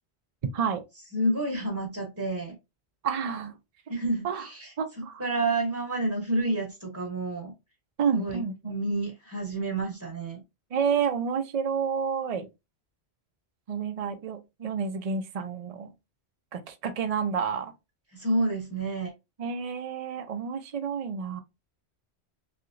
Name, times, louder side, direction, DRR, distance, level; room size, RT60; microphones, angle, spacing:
voice 1, 1.1-2.6 3.9-7.5 8.1-10.4 18.1-19.1, right 2 dB, 20° right, 0.8 m, -29 dB
voice 2, 3.0-3.5 4.2-4.5 4.8-5.2 8.0-8.7 10.7-12.5 13.7-15.9 16.5-17.7 19.4-21.4, right 6 dB, 50° right, 0.5 m, -29 dB
3.2 x 2.9 x 2.5 m
omnidirectional pair, 1.1 m